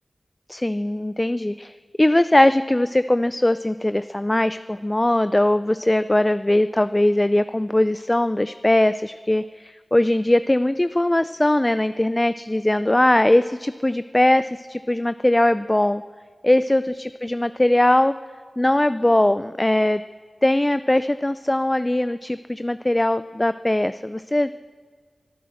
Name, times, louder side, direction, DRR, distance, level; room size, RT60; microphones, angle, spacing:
voice 1, 0.5-1.7 2.0-16.0 16.4-18.1 18.6-20.0 20.4-24.5, left 1 dB, 20° left, 13 dB, 0.4 m, -20 dB
21.0 x 10.0 x 6.4 m, 1.5 s
cardioid pair, 45°, 0 cm